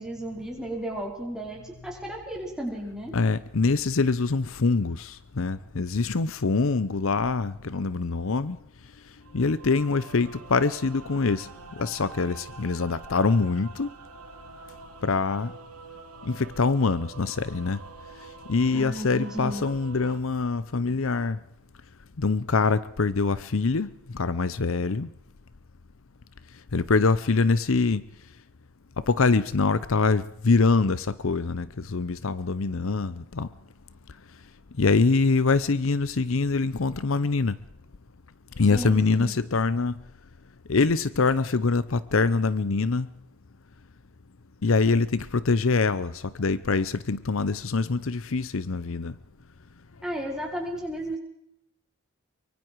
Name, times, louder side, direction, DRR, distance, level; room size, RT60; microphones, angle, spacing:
voice 1, 0.0-3.2 18.7-19.7 38.7-39.3 50.0-51.2, right 1 dB, 5° right, -1 dB, 4.8 m, -34 dB
voice 2, 3.1-8.6 9.3-11.5 11.8-13.9 15.0-15.5 16.3-17.8 18.5-21.4 22.2-25.1 26.7-28.0 29.1-33.5 34.8-37.6 38.6-39.9 40.7-43.1 44.6-49.1, left 4 dB, 65° left, 16 dB, 0.7 m, -24 dB
sound 1, 9.2-20.2, right 4 dB, 90° right, 2.6 m, -46 dB
24.0 x 23.5 x 4.7 m, 0.79 s
head